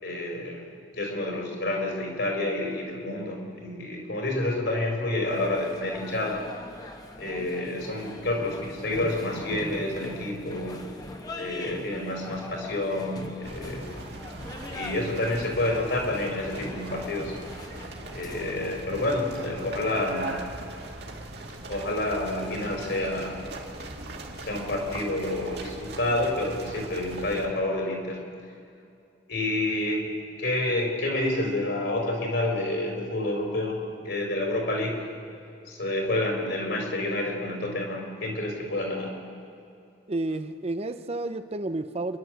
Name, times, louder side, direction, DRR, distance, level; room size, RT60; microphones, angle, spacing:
voice 1, 0.0-6.5 7.2-10.9 11.3-14.0 14.7-17.3 18.1-20.4 21.7-23.5 24.4-28.2 29.3-30.1 30.4-35.0 35.7-39.2, left 1 dB, 60° left, 1 dB, 4.7 m, -29 dB
sound 1, 5.2-18.8, left 1 dB, 20° left, 1.4 m, -41 dB
sound 2, 13.4-27.5, right 2 dB, 60° right, 2.2 m, -40 dB
voice 2, 40.1-42.2, right 2 dB, 30° right, 10 dB, 0.6 m, -31 dB
28.5 x 11.5 x 7.9 m, 2.5 s
head